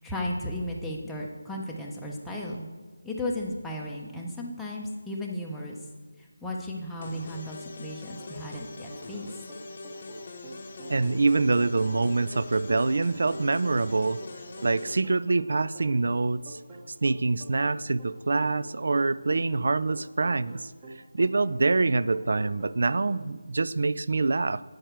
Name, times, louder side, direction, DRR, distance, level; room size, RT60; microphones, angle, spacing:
voice 1, 0.0-2.6 3.0-5.8 6.2-9.3, left 1 dB, ahead, -4 dB, 0.6 m, -35 dB
sound 1, 7.0-15.0, left 3 dB, 40° left, 0.8 m, -43 dB
sound 2, 8.2-23.3, right 1 dB, 20° right, 1.0 m, -47 dB
voice 2, 10.9-14.2 14.6-16.6 17.0-20.7 21.1-24.6, right 3 dB, 60° right, 17 dB, 0.3 m, -25 dB
9.2 x 6.4 x 4.4 m, 1.4 s
figure-of-eight pair, 170°, 0 cm